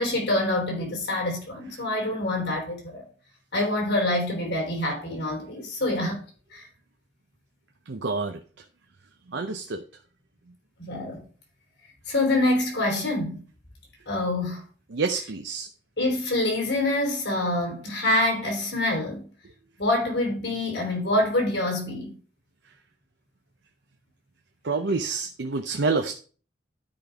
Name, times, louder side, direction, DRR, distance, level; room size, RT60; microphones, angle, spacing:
voice 1, 0.0-3.1 3.5-6.2 6.5-6.7 10.8-11.2 12.1-13.4 14.1-14.6 16.0-19.2 19.8-22.1, left 1 dB, 65° left, 3.7 m, -26 dB
voice 2, 7.9-8.4 9.3-9.8 14.9-15.7 24.6-26.1, right 4 dB, 75° right, 0.7 m, -27 dB
12.0 x 5.3 x 3.5 m
head